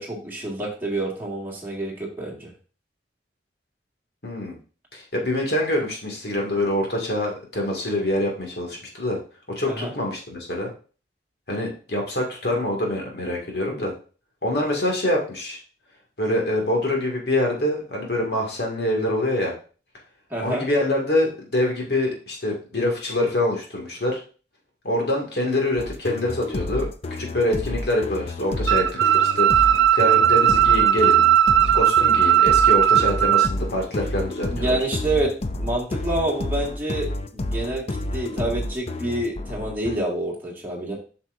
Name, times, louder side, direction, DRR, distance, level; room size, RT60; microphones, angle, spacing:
voice 1, 0.0-2.5 9.7-9.9 20.3-20.6 34.5-35.3 35.6-37.8 38.1-40.9, right 1 dB, 10° right, -4 dB, 1.9 m, -27 dB
voice 2, 4.2-4.6 4.9-9.2 9.6-10.7 11.5-13.9 14.4-15.6 16.2-19.5 20.4-24.2 24.8-26.9 27.2-31.2 31.7-34.8, left 1 dB, 65° left, 0 dB, 2.2 m, -25 dB
sound 1, 25.8-40.0, left 1 dB, 35° left, 0.5 m, -30 dB
sound 2, 28.7-33.5, right 10 dB, 90° right, 0.4 m, -17 dB
7.8 x 5.9 x 2.6 m, 0.37 s
head